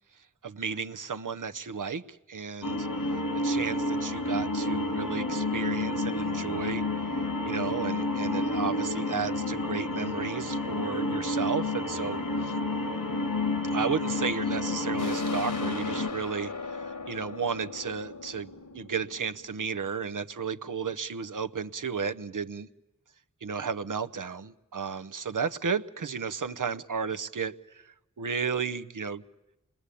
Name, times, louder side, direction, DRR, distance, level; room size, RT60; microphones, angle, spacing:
voice 1, 0.4-6.8 7.5-12.6 13.7-22.7 23.4-29.2, right 6 dB, 70° right, 0.8 m, -33 dB
sound 1, 2.6-16.1, left 2 dB, 90° left, 2.8 m, -30 dB
sound 2, 15.0-20.3, left 4 dB, 65° left, 1.5 m, -40 dB
27.0 x 21.0 x 8.4 m
cardioid pair, 40°, 32 cm